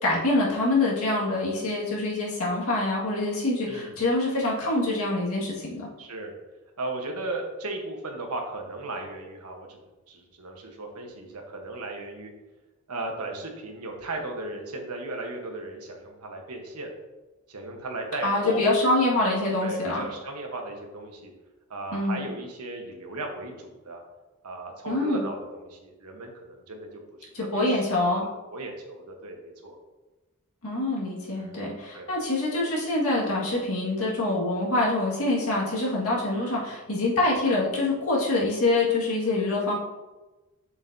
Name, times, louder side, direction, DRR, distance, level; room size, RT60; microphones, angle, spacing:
voice 1, 0.0-5.9 18.2-20.1 21.9-22.3 24.9-25.2 27.3-28.3 30.6-39.7, left 2 dB, 70° left, -5 dB, 2.0 m, -25 dB
voice 2, 6.0-6.3 6.8-9.8 10.1-12.3 12.9-16.9 17.5-18.6 19.6-21.3 21.7-24.0 24.4-26.9 27.2-27.8 28.1-29.8 31.4-31.6 31.9-32.1 36.3-36.6, right 2 dB, 85° right, 2 dB, 1.2 m, -36 dB
6.9 x 6.6 x 2.8 m, 1.1 s
head